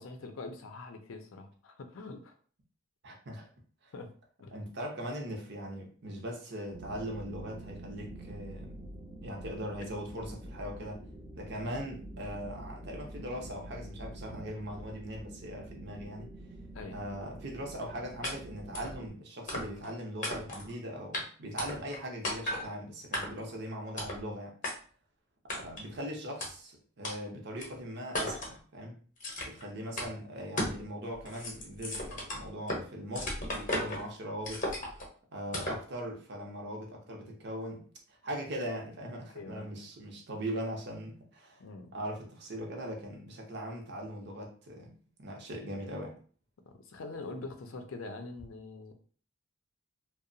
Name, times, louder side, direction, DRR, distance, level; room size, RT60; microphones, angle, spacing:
voice 1, 0.0-2.3 3.9-4.1 4.4-4.6 16.7-17.0 39.3-39.7 41.6-41.9 46.7-48.9, left 3 dB, 75° left, 6 dB, 0.5 m, -44 dB
voice 2, 3.0-3.5 3.8-3.9 4.5-8.8 9.2-11.0 11.3-16.3 16.9-24.5 25.5-29.0 29.4-34.7 35.3-41.6 41.9-44.9 45.2-46.1, equal, 55° right, 1 dB, 0.6 m, -40 dB
sound 1, 6.7-19.1, right 1 dB, 15° right, 0.4 m, -46 dB
sound 2, 18.2-18.3 18.7-18.9 19.5-19.9 20.2-20.7 21.1-21.2 21.6-22.0 22.2-22.6 23.1-23.5 24.0-24.2 24.6-24.7 25.5-25.9 26.4-26.5 27.0-27.2 27.6-27.7 28.1-28.6 29.2-29.6 30.0-30.1 30.6-30.8 31.1-32.8 33.1-34.0 34.4-35.1 35.5-35.8, left 1 dB, 40° left, 0.7 m, -35 dB
2.8 x 2.0 x 2.6 m, 0.43 s
head